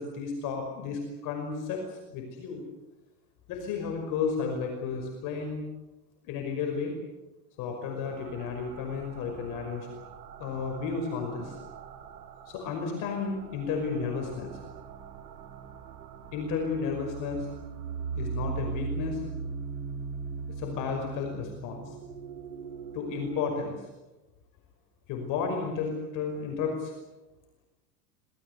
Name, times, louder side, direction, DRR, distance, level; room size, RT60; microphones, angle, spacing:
voice 1, 0.0-2.6 3.5-5.6 6.2-6.9 7.6-9.9 10.4-11.6 12.5-14.6 16.3-17.5 18.2-19.2 20.6-22.0 22.9-23.8 25.1-26.9, left 5 dB, 40° left, 2 dB, 5.6 m, -33 dB
sound 1, 8.0-23.5, right 5 dB, 85° right, 5.6 m, -40 dB
26.5 x 21.5 x 8.2 m, 1.0 s
supercardioid pair, 155°, 47 cm